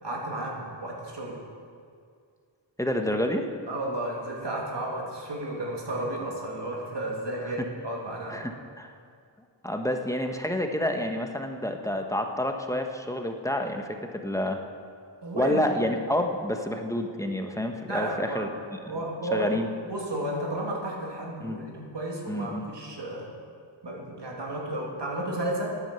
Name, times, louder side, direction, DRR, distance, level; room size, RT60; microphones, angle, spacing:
voice 1, 0.0-1.4 3.7-8.5 15.2-15.7 17.8-18.4 18.9-23.3 23.8-25.8, right 1 dB, 65° right, -2 dB, 2.6 m, -33 dB
voice 2, 2.8-3.4 7.4-7.5 8.3-8.5 8.8-8.9 9.6-13.9 14.1-14.6 15.3-18.5 18.8-19.0 19.3-19.7 21.4-21.6 22.3-22.7, left 1 dB, 5° left, 4 dB, 1.2 m, -28 dB
11.0 x 8.9 x 7.0 m, 2.2 s
cardioid pair, 50°, 46 cm